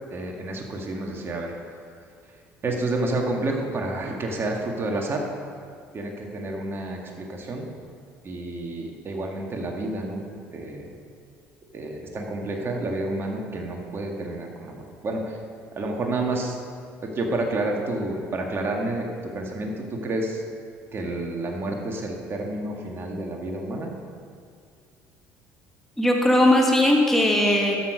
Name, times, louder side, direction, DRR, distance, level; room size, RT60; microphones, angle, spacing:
voice 1, 0.1-1.5 2.6-5.3 5.9-7.6 8.2-10.2 10.5-10.9 11.7-15.4 15.7-16.6 17.0-20.4 20.9-23.9, right 2 dB, 40° right, 1 dB, 1.8 m, -29 dB
voice 2, 26.0-27.7, left 1 dB, 5° left, -1 dB, 1.6 m, -19 dB
13.0 x 6.3 x 5.1 m, 2.3 s
supercardioid pair, 80°, 6 cm